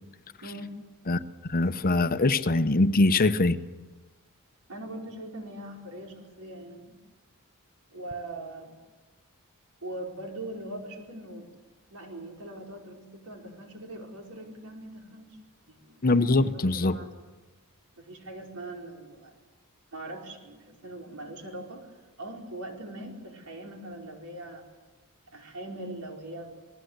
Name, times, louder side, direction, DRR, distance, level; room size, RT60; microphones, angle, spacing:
voice 1, 0.4-0.8 4.7-7.0 7.9-8.7 9.8-11.5 11.9-15.3 15.7-16.0 16.7-17.1 18.0-19.3 19.9-21.9 22.2-24.6 25.3-26.6, right 1 dB, 85° right, 1 dB, 4.7 m, -41 dB
voice 2, 1.1-3.6 16.0-17.0, left 2 dB, 40° left, 11 dB, 0.9 m, -23 dB
27.5 x 20.0 x 8.1 m, 1.2 s
head